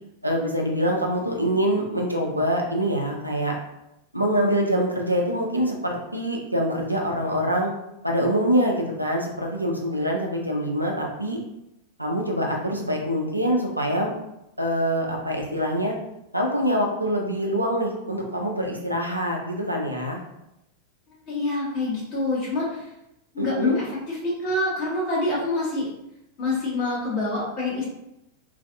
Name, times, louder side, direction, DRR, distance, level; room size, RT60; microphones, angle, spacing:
voice 1, 0.2-3.6 4.1-7.7 8.0-11.4 12.0-14.1 14.6-15.9 16.3-20.2 23.4-23.8, equal, 85° right, 0 dB, 0.5 m, -25 dB
voice 2, 21.3-22.9 23.3-25.9 26.4-27.9, left 2 dB, 40° left, -6 dB, 1.5 m, -26 dB
3.1 x 2.5 x 2.5 m, 0.85 s
figure-of-eight pair, 90°, 0 cm